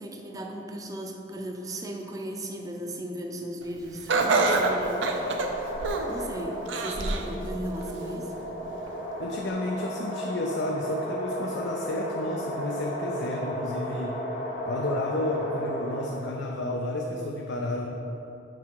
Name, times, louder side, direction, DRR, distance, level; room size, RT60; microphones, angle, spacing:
voice 1, 0.0-5.1 6.1-8.5, right 1 dB, 20° right, 2 dB, 0.5 m, -36 dB
sound 1, 4.1-16.5, equal, 40° left, 0.9 m, -34 dB
Laughter, 4.1-6.2 6.7-7.3 7.8-7.9 8.9-9.0, right 3 dB, 85° right, 0.5 m, -25 dB
voice 2, 9.2-14.2 14.7-17.9, left 1 dB, 65° left, 1 dB, 0.5 m, -31 dB
5.9 x 4.6 x 4.6 m, 2.9 s
head